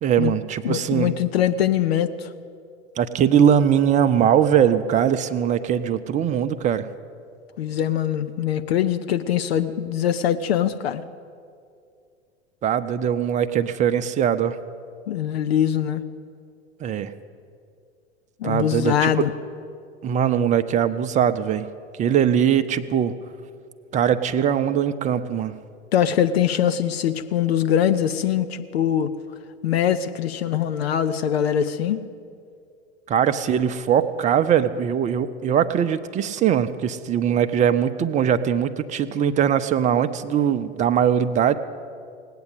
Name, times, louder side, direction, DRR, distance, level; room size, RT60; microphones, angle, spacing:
voice 1, 0.0-1.1 3.0-6.9 12.6-14.6 16.8-17.1 18.4-19.1 20.0-21.7 22.0-23.1 23.9-25.5 33.1-41.6, right 9 dB, 20° right, 11 dB, 0.6 m, -21 dB
voice 2, 0.6-2.3 7.6-11.0 15.1-16.0 18.4-19.3 25.9-29.1 29.6-32.0, left 10 dB, 60° left, 10 dB, 0.7 m, -22 dB
18.5 x 8.4 x 8.2 m, 2.3 s
figure-of-eight pair, 85°, 34 cm